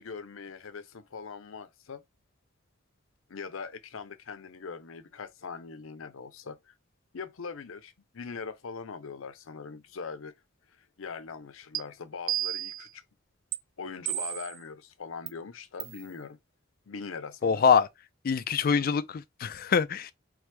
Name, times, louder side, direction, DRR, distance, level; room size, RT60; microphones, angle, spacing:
voice 1, 0.0-2.0 3.3-6.7 7.1-10.3 11.0-13.0 13.8-16.4 16.9-17.7, left 5 dB, 85° left, 0.6 m, -41 dB
sound 1, 11.7-11.8 12.3-12.9 13.5-13.6 14.1-14.6 15.3-15.4 15.8-16.0, right 13 dB, 70° right, 0.4 m, -32 dB
voice 2, 17.4-17.9 18.2-20.1, left 6 dB, 45° left, 0.4 m, -24 dB
3.4 x 3.3 x 3.3 m
head